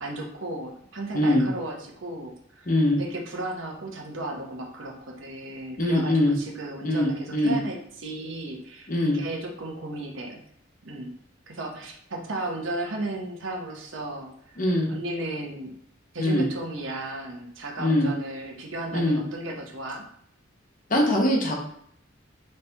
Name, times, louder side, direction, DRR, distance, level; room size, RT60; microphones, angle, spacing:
voice 1, 0.0-2.7 3.0-10.4 10.8-11.1 11.5-14.6 14.9-15.7 16.1-20.1, right 2 dB, 80° right, 0 dB, 1.0 m, -35 dB
voice 2, 1.1-1.5 2.7-3.0 5.8-6.4 6.8-7.6 8.9-9.2 14.6-14.9 16.2-16.5 17.8-18.1 18.9-19.2 20.9-21.6, left 1 dB, 45° left, 0 dB, 1.0 m, -22 dB
4.2 x 3.3 x 3.4 m, 0.69 s
head